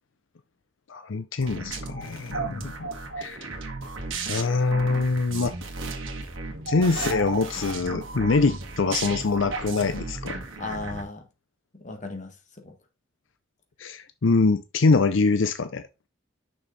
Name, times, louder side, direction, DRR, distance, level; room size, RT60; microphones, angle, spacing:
voice 1, 0.9-2.9 3.2-3.5 4.3-5.5 6.7-10.4 13.8-15.8, left 3 dB, 80° left, 0.6 m, -24 dB
sound 1, 1.4-11.0, right 3 dB, 85° right, 1.8 m, -34 dB
voice 2, 10.6-11.3 11.7-12.7, left 3 dB, 40° left, 1.6 m, -36 dB
6.4 x 6.2 x 4.0 m
head